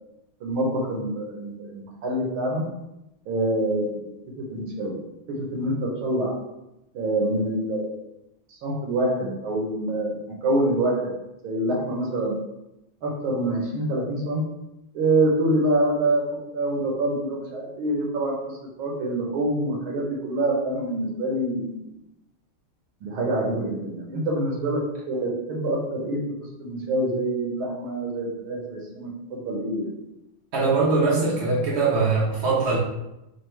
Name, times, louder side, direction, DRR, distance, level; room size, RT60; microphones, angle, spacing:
voice 1, 0.4-2.7 3.3-5.0 5.3-6.4 6.9-8.0 8.6-11.1 11.4-12.3 13.0-14.4 14.9-16.3 16.5-21.8 23.0-26.2 26.6-29.9, right 1 dB, 75° right, -1 dB, 1.7 m, -26 dB
voice 2, 30.5-32.8, right 3 dB, 55° right, -5 dB, 0.7 m, -22 dB
4.7 x 2.4 x 4.5 m, 0.91 s
omnidirectional pair, 2.4 m